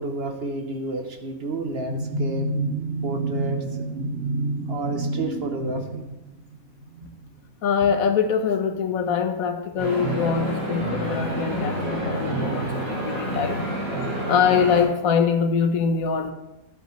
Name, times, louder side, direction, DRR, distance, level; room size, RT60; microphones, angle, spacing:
voice 1, 0.0-7.4, right 2 dB, 50° right, 5 dB, 0.9 m, -28 dB
voice 2, 7.6-13.6 14.3-16.3, left 6 dB, 80° left, 7 dB, 1.3 m, -23 dB
sound 1, 9.8-14.8, right 1 dB, 80° right, 4.0 m, -28 dB
12.0 x 8.2 x 3.1 m, 0.96 s
omnidirectional pair, 1.5 m